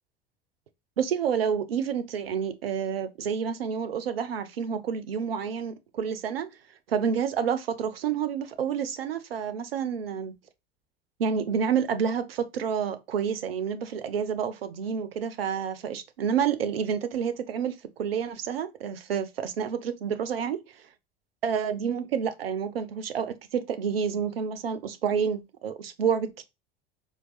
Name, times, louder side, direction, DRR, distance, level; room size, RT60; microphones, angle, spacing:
voice 1, 1.0-6.5 6.9-10.3 11.2-20.6 21.4-26.4, right 7 dB, 75° right, 0.6 m, -29 dB
4.5 x 2.3 x 2.4 m
figure-of-eight pair, 70°, 30 cm